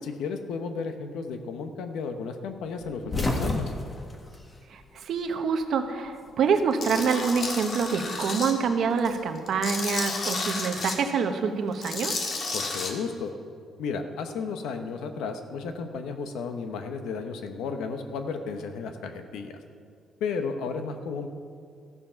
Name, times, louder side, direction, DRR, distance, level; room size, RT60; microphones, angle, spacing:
voice 1, 0.0-3.7 12.5-13.3 13.8-19.6 20.2-21.3, left 5 dB, 90° left, 7 dB, 1.0 m, -33 dB
sound 1, 2.8-5.3 5.6-6.7 7.9-9.3, left 2 dB, 25° left, 1.5 m, -32 dB
voice 2, 4.7-12.1, right 5 dB, 65° right, 7 dB, 1.0 m, -26 dB
Tools, 6.8-8.5 9.0-11.0 11.7-12.9, left 3 dB, 50° left, 1.7 m, -32 dB
14.0 x 7.1 x 5.8 m, 2.2 s
cardioid pair, 105°, 0 cm